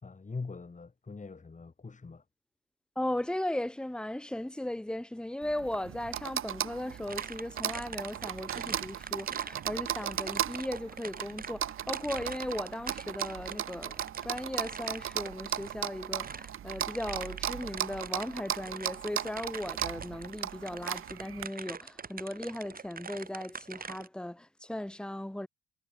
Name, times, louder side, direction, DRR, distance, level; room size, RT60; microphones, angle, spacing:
voice 1, 0.0-2.2, left 4 dB, 25° left, 2.7 m, -42 dB
voice 2, 3.0-25.5, left 1 dB, 5° left, 1.1 m, -37 dB
sound 1, 5.4-21.4, right 11 dB, 45° right, 0.6 m, -37 dB
sound 2, 7.1-24.1, right 5 dB, 30° right, 1.2 m, -45 dB
cardioid pair, 90°, 30 cm